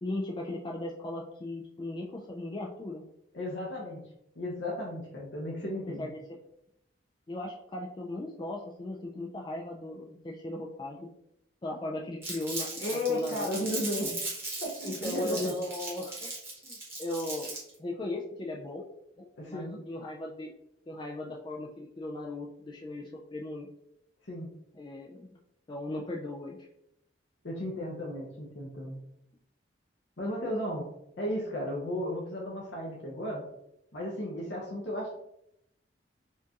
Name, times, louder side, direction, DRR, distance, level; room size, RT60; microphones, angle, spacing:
voice 1, 0.0-3.0 5.9-6.2 7.3-11.1 11.6-13.5 14.8-16.3 16.6-17.5 17.8-18.9 19.2-20.5 20.9-23.7 24.7-25.4 25.7-26.6, left 2 dB, 25° left, -1 dB, 0.3 m, -37 dB
voice 2, 3.3-4.0 4.4-6.1 12.8-14.1 14.6-15.5 19.4-19.8 24.3-24.5 27.4-29.0 30.2-30.9 31.2-33.4 33.9-35.1, left 1 dB, 75° left, -3 dB, 0.8 m, -34 dB
Crumpling crinkling, 12.2-17.7, right 2 dB, 15° right, 1.2 m, -38 dB
4.4 x 2.5 x 2.8 m, 0.79 s
head